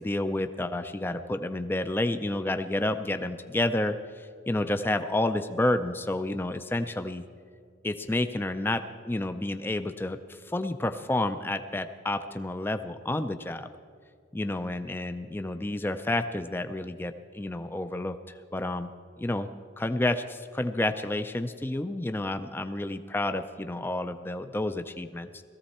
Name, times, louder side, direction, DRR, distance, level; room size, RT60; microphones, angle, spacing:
voice 1, 0.0-7.2 7.8-13.7 14.3-18.9 19.2-19.5 19.8-25.4, left 1 dB, 10° left, 9 dB, 0.4 m, -30 dB
17.5 x 14.5 x 4.2 m, 2.3 s
head